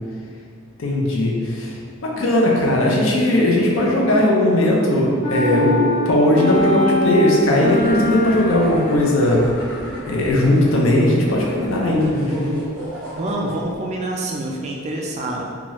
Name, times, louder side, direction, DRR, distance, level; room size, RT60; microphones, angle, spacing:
voice 1, 0.8-1.7 2.0-9.4 10.0-12.5, left 1 dB, 65° left, -3 dB, 0.5 m, -18 dB
sound 1, 5.2-9.1, left 1 dB, 45° left, 0.9 m, -23 dB
sound 2, 7.5-13.8, equal, 5° left, 0.9 m, -33 dB
voice 2, 13.2-15.4, right 1 dB, 30° right, -1 dB, 0.3 m, -26 dB
2.9 x 2.3 x 3.0 m, 2.1 s
head